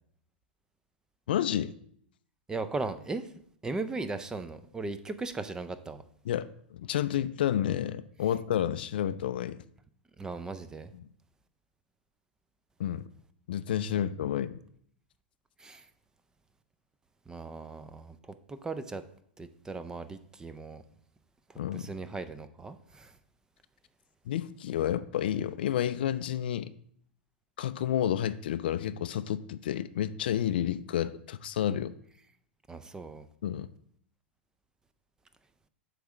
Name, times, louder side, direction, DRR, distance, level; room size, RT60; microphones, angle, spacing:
voice 1, 1.3-1.7 6.2-9.6 10.9-11.0 12.8-13.0 13.5-14.6 21.6-21.9 24.3-26.7 27.6-31.9 33.4-33.7, left 10 dB, 60° left, 14 dB, 0.4 m, -30 dB
voice 2, 2.5-3.3 3.6-6.0 10.2-10.9 15.6-15.8 17.3-19.0 19.4-20.8 21.7-23.1 32.7-33.2, right 3 dB, 10° right, 12 dB, 0.5 m, -37 dB
7.9 x 3.3 x 6.2 m, 0.64 s
figure-of-eight pair, 95°, 6 cm